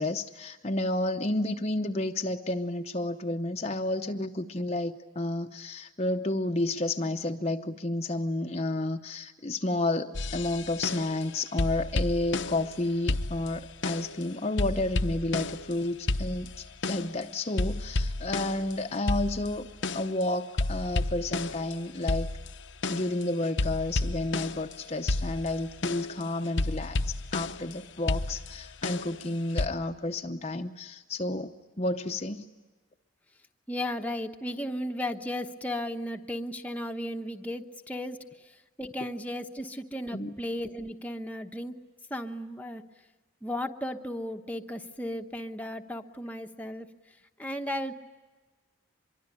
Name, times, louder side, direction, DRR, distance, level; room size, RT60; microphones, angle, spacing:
voice 1, 0.0-19.7 19.9-22.3 22.9-32.5 40.1-40.3, left 2 dB, 30° left, 5 dB, 0.8 m, -31 dB
sound 1, 10.1-11.3 11.6-12.8 13.1-14.2 14.6-15.8 16.1-17.2 17.6-20.2 20.6-24.8 25.1-27.7 28.1-29.7, left 2 dB, 65° left, 0.8 m, -31 dB
voice 2, 33.7-41.7 42.1-42.8 43.4-46.9 47.4-47.9, left 1 dB, 5° left, 4 dB, 1.0 m, -35 dB
24.5 x 23.5 x 10.0 m, 1.2 s
head